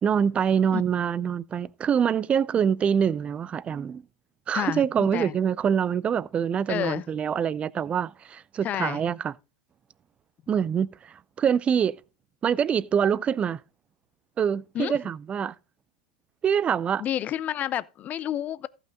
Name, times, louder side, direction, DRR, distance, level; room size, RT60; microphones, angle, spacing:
voice 1, 0.0-4.0 4.5-9.3 10.5-12.0 12.4-13.6 14.4-15.6 16.4-17.0, right 8 dB, 25° right, 0.4 m, -25 dB
voice 2, 4.5-5.4 6.7-7.0 8.6-9.0 14.7-15.0 17.0-18.7, left 11 dB, 35° left, 0.5 m, -30 dB
14.5 x 5.9 x 3.8 m
hypercardioid pair, 100°, 5 cm